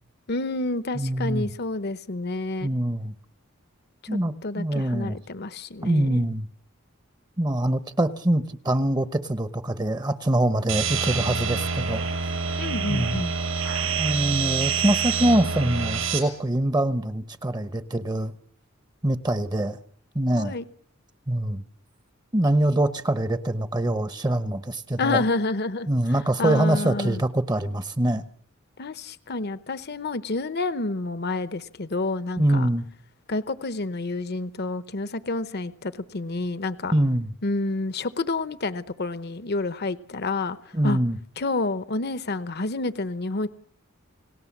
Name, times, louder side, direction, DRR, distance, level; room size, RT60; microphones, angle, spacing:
voice 1, 0.3-2.7 4.0-6.3 11.5-11.6 12.6-13.3 20.4-20.6 25.0-25.9 26.4-27.2 28.8-32.7 33.3-37.0 37.4-40.6 40.8-41.0 41.4-43.5, left 2 dB, 50° left, 13 dB, 0.9 m, -29 dB
voice 2, 0.9-1.5 2.6-3.1 4.1-5.2 5.8-6.5 7.4-12.0 12.9-13.2 14.0-18.3 19.0-19.8 20.1-20.6 21.3-21.6 22.3-25.2 25.9-28.2 32.4-32.9 36.9-37.3 40.7-41.2, right 1 dB, 20° right, 12 dB, 0.9 m, -24 dB
sound 1, 10.7-16.2, right 5 dB, 75° right, 6.4 m, -27 dB
29.5 x 18.5 x 7.3 m, 0.63 s
head